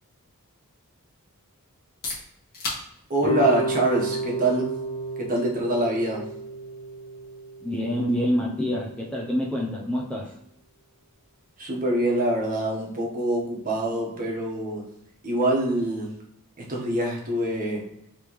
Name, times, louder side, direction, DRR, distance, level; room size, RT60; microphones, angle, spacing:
sound 1, 1.7-17.4, left 3 dB, 45° left, 1.5 m, -45 dB
voice 1, 3.1-4.7 5.2-6.2 11.6-14.8 15.2-16.1 16.6-17.8, right 1 dB, 40° right, -2 dB, 1.2 m, -25 dB
sound 2, 3.2-8.3, right 3 dB, 25° left, 1.3 m, -31 dB
voice 2, 7.6-10.3, equal, 5° left, -3 dB, 0.5 m, -27 dB
5.1 x 3.2 x 3.1 m, 0.74 s
head